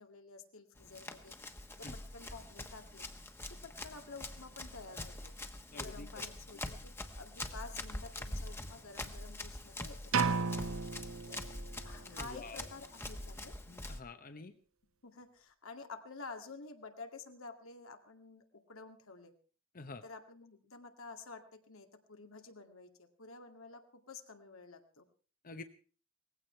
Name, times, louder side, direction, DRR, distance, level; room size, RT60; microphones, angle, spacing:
voice 1, 0.0-1.3 1.8-3.1 3.5-5.3 5.8-10.1 11.3-11.4 11.8-13.6 15.0-19.3 20.0-25.1, left 4 dB, 85° left, 5 dB, 2.2 m, -51 dB
Run, 0.8-14.0, left 1 dB, 10° left, 1.3 m, -44 dB
voice 2, 5.7-6.3 12.1-12.7 13.7-14.5 19.7-20.0 25.4-25.6, left 3 dB, 45° left, 9 dB, 0.9 m, -48 dB
sound 1, 10.1-12.0, right 5 dB, 85° right, 0.9 m, -34 dB
18.5 x 15.5 x 4.5 m, 0.40 s
head